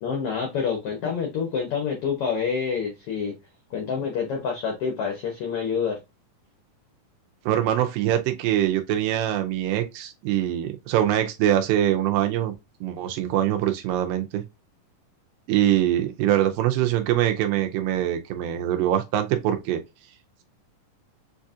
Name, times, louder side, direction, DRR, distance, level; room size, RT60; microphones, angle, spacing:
voice 1, 0.0-3.3 3.7-6.0, left 6 dB, 80° left, 1.3 m, -27 dB
voice 2, 7.5-12.5 12.8-14.4 15.5-19.8, right 12 dB, 85° right, 2.3 m, -23 dB
6.9 x 2.7 x 2.4 m
omnidirectional pair, 3.9 m